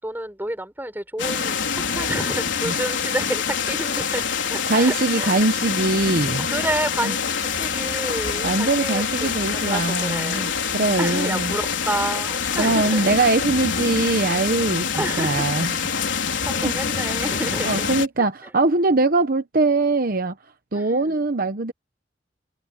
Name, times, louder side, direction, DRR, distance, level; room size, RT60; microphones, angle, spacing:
voice 1, 0.0-5.4 6.5-10.5 11.0-13.2 14.9-15.4 16.1-17.9 20.7-21.2, right 1 dB, 10° right, 6.3 m, -30 dB
sound 1, 1.2-18.1, left 6 dB, 80° left, 4.0 m, -25 dB
voice 2, 4.7-6.5 7.0-7.1 8.4-11.5 12.6-15.8 16.6-16.8 17.6-20.3 20.7-21.7, right 3 dB, 50° right, 1.0 m, -22 dB
head